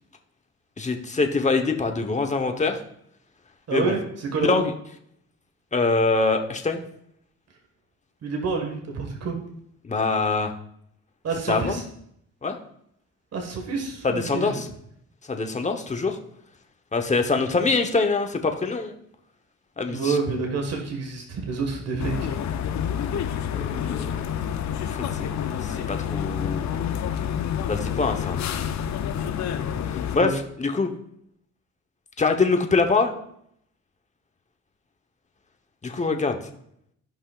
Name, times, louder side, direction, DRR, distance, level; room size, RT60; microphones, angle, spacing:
voice 1, 0.8-2.8 3.7-3.9 4.4-4.6 5.7-6.8 9.8-10.5 11.5-11.7 12.4-12.6 14.0-14.7 15.3-16.2 16.9-18.9 19.8-20.2 23.5-24.2 24.9-25.3 25.6-26.7 27.7-28.4 29.9-30.3 30.6-30.9 32.2-33.1 35.8-36.4, left 3 dB, 25° left, 5 dB, 1.1 m, -24 dB
voice 2, 3.7-4.7 8.2-9.4 11.2-11.8 13.3-14.6 19.8-22.3 30.2-30.3, right 4 dB, 55° right, 2 dB, 1.7 m, -28 dB
sound 1, 22.0-30.2, left 8 dB, 65° left, 0.8 m, -28 dB
15.0 x 5.5 x 2.5 m, 0.71 s
cardioid pair, 90°, 30 cm